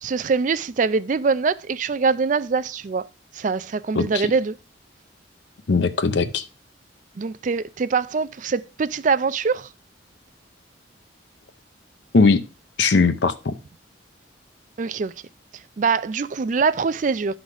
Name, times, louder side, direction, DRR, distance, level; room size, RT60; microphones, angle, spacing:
voice 1, 0.0-3.1 3.3-4.6 7.2-9.7 14.8-15.1 15.8-17.3, right 5 dB, 40° right, 0.4 m, -23 dB
voice 2, 3.9-4.3 5.7-6.4 12.1-12.4 12.8-13.5, left 4 dB, 65° left, 0.6 m, -19 dB
11.5 x 4.0 x 4.8 m
head